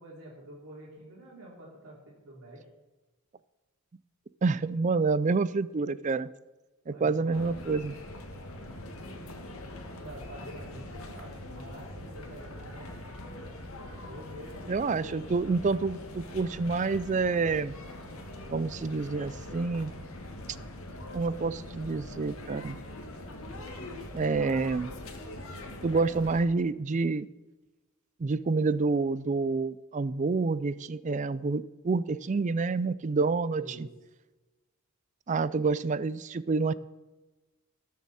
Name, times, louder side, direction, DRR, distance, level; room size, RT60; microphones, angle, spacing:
voice 1, 0.0-2.6 6.9-7.5 10.0-13.0 14.1-15.2 33.6-33.9, right 1 dB, 75° right, -5 dB, 3.2 m, -47 dB
voice 2, 4.4-6.3 6.9-7.9 14.7-17.7 18.5-19.9 21.1-22.8 24.1-24.9 25.8-27.3 28.2-33.9 35.3-36.7, right 4 dB, 35° right, 17 dB, 0.4 m, -28 dB
sound 1, 7.3-26.4, left 1 dB, 75° left, 1.8 m, -43 dB
19.5 x 7.1 x 4.2 m, 1.1 s
head